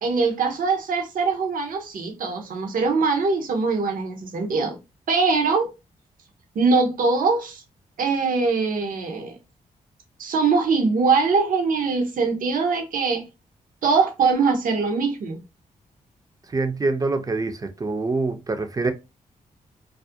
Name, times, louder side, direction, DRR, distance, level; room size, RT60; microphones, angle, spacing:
voice 1, 0.0-4.8 5.1-5.7 6.6-7.6 8.0-9.4 10.2-13.2 13.8-15.4, right 4 dB, 65° right, 0.6 m, -22 dB
voice 2, 16.5-18.9, right 3 dB, 25° right, 0.5 m, -25 dB
2.3 x 2.0 x 2.6 m
cardioid pair, 60°, 15 cm